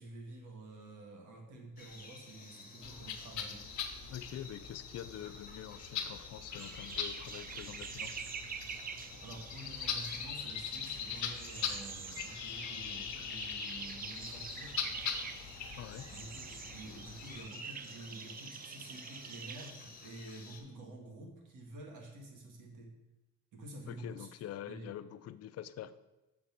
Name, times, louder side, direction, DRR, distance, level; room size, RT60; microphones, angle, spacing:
voice 1, 0.0-3.6 9.2-14.8 16.1-23.0 23.5-24.3 24.7-24.9, right 2 dB, 80° right, 1 dB, 1.7 m, -49 dB
sound 1, 1.8-20.6, left 4 dB, 30° left, 1.3 m, -53 dB
sound 2, 2.8-17.4, left 7 dB, 70° left, 0.9 m, -42 dB
voice 2, 4.1-8.2 15.8-16.1 23.9-26.0, left 11 dB, 55° left, 14 dB, 0.5 m, -45 dB
sound 3, 6.5-19.7, right 7 dB, 30° right, 0.4 m, -47 dB
6.7 x 3.8 x 5.8 m, 1.0 s
cardioid pair, 90°, 30 cm